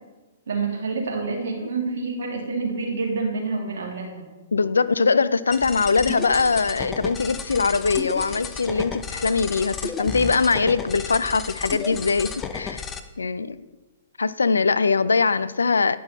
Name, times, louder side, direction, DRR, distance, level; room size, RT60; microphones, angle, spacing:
voice 1, 0.5-4.3, right 4 dB, 65° right, 2.2 m, -27 dB
voice 2, 4.5-12.8 13.2-13.6 14.2-16.0, left 4 dB, 80° left, 0.3 m, -22 dB
sound 1, 5.5-13.0, left 5 dB, 20° left, 0.5 m, -33 dB
9.8 x 5.5 x 4.0 m
figure-of-eight pair, 115°, 0 cm